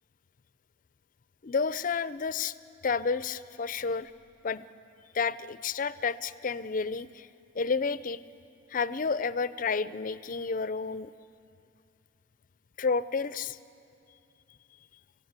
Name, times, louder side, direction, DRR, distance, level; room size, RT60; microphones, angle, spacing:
voice 1, 1.4-2.5 2.8-4.1 4.4-4.7 5.1-7.3 7.5-8.2 8.7-11.1 12.8-13.6, left 5 dB, 40° left, 15 dB, 0.5 m, -30 dB
27.0 x 16.5 x 8.1 m, 2.7 s
head